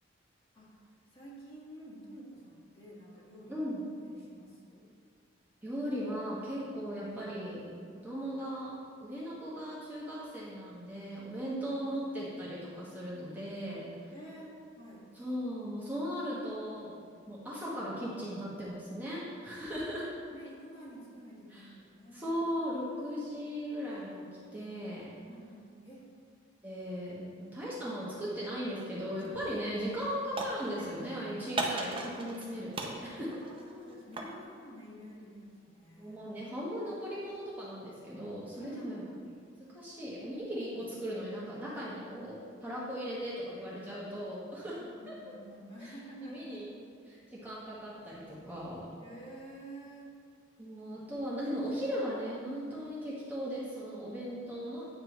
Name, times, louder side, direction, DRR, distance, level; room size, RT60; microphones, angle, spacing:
voice 1, 1.1-3.5 4.0-4.9 14.1-15.0 20.3-22.3 25.3-26.1 33.4-36.3 38.5-39.1 44.8-46.7 49.0-50.1, right 1 dB, 30° left, -6 dB, 1.6 m, -50 dB
voice 2, 3.5-3.8 5.6-7.6 7.9-8.7 9.0-14.1 15.1-17.0 17.3-20.1 21.5-21.6 22.1-25.1 26.6-33.4 36.0-39.0 39.7-44.8 45.1-45.2 45.8-45.9 46.2-46.7 47.1-48.9 50.6-54.9, equal, 10° right, -8 dB, 1.0 m, -38 dB
sound 1, 29.2-29.5 29.8-31.0 31.6-32.5 32.7-34.4, right 2 dB, 25° right, 0.6 m, -37 dB
8.9 x 5.4 x 3.0 m, 2.2 s
head